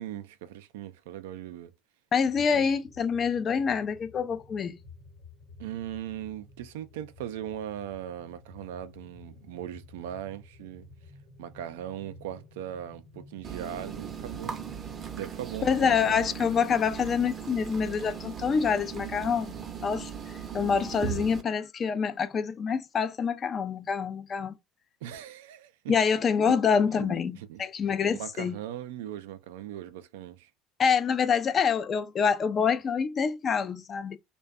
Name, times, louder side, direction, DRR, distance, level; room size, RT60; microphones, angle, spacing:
voice 1, 0.0-1.7 2.5-2.7 5.6-10.9 11.4-14.5 15.1-16.2 25.0-25.9 26.4-26.6 26.9-27.1 27.3-27.6 28.1-30.5, right 11 dB, 90° right, 0.3 m, -39 dB
voice 2, 2.1-4.8 15.6-19.5 19.8-20.1 20.5-24.6 25.9-28.6 30.8-34.2, left 6 dB, 40° left, 0.4 m, -26 dB
sound 1, 2.2-15.1, left 3 dB, 75° left, 0.8 m, -52 dB
sound 2, 13.4-21.4, right 8 dB, 40° right, 0.5 m, -38 dB
2.5 x 2.1 x 2.3 m
supercardioid pair, 85°, 0 cm